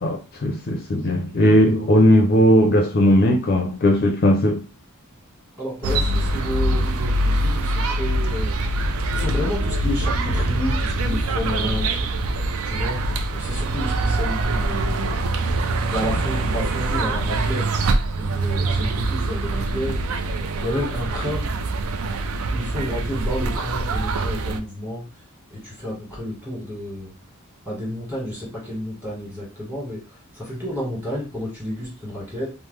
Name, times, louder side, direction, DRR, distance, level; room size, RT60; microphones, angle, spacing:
voice 1, 0.0-4.6, equal, 45° left, 0.4 m, -17 dB
voice 2, 5.6-12.3 12.6-13.0 13.3-15.3 15.9-17.8 18.2-20.0 20.6-21.5 22.5-25.2 25.5-27.2 27.6-32.5, equal, 10° right, 1.5 m, -31 dB
sound 1, 5.8-24.6, right 2 dB, 70° right, 0.4 m, -24 dB
3.1 x 2.0 x 3.2 m
head